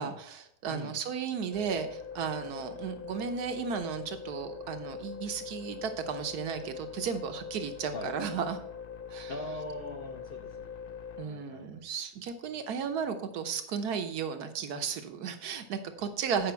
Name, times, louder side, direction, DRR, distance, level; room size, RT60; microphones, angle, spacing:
voice 1, 0.0-8.6 9.1-9.3 11.2-16.5, right 6 dB, 80° right, 8 dB, 1.4 m, -34 dB
sound 1, 1.5-11.3, left 7 dB, 65° left, 0.5 m, -43 dB
voice 2, 9.3-11.8, left 1 dB, 45° left, 2 dB, 0.8 m, -42 dB
8.7 x 5.0 x 5.6 m, 0.71 s
omnidirectional pair, 1.7 m